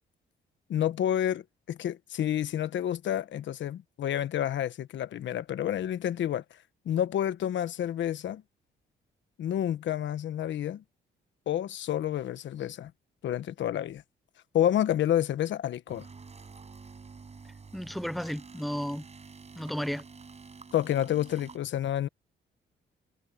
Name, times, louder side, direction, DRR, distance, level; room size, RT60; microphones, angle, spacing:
voice 1, 0.7-1.4 1.7-6.6 6.8-8.4 9.4-10.8 11.5-12.9 13.2-14.0 14.5-16.1 20.7-22.1, left 11 dB, 70° left, 1.2 m, -29 dB
sound 1, 15.9-21.6, right 4 dB, 35° right, 6.9 m, -48 dB
voice 2, 17.7-19.0 19.6-20.0, equal, ahead, 0.6 m, -33 dB
cardioid pair, 90°, 20 cm